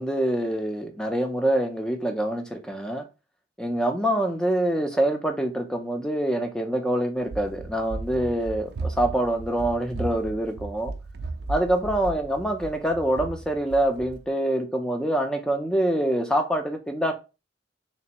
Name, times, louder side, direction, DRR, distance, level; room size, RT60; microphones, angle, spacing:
voice 1, 0.0-3.0 3.6-10.9 11.5-17.1, right 1 dB, 5° left, 0.5 m, -25 dB
Run, 7.2-14.3, right 3 dB, 60° right, 0.4 m, -36 dB
3.4 x 3.2 x 2.9 m
head